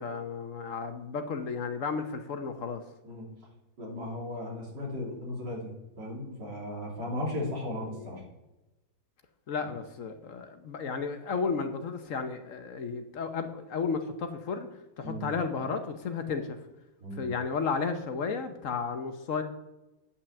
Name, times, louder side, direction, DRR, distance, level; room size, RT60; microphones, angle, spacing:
voice 1, 0.0-2.8 7.9-8.1 9.5-14.7 15.0-16.6 17.1-19.4, left 5 dB, 55° left, 8 dB, 0.9 m, -33 dB
voice 2, 3.8-8.2 15.0-15.3 17.0-17.3, left 1 dB, 60° right, -2 dB, 3.7 m, -36 dB
9.6 x 6.0 x 7.1 m, 0.99 s
omnidirectional pair, 2.1 m